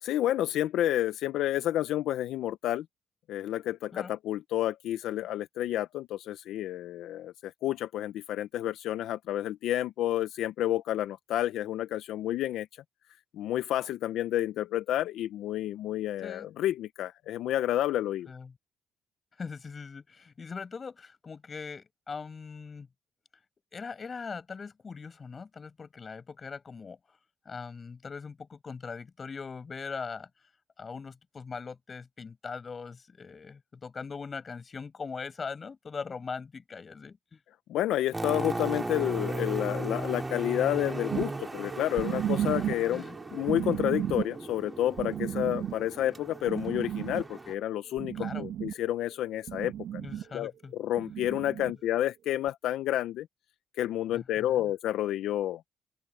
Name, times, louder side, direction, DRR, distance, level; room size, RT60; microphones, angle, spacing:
voice 1, 0.0-2.9 3.3-12.7 13.3-18.3 37.7-43.0 43.3-50.0 50.3-53.3 53.8-55.6, left 13 dB, 85° left, 0.5 m, -30 dB
voice 2, 19.4-22.9 23.7-27.0 27.4-30.3 30.8-37.4 42.9-43.2 48.1-48.5 50.0-50.7 51.6-51.7 54.1-54.7, left 5 dB, 35° left, 7.9 m, -41 dB
sound 1, 38.1-47.5, right 2 dB, 15° right, 2.8 m, -37 dB
sound 2, 41.1-48.9 49.3-50.2 51.0-51.7 52.5-52.6, right 10 dB, 80° right, 1.2 m, -34 dB
open air
cardioid pair, 105°, 0 cm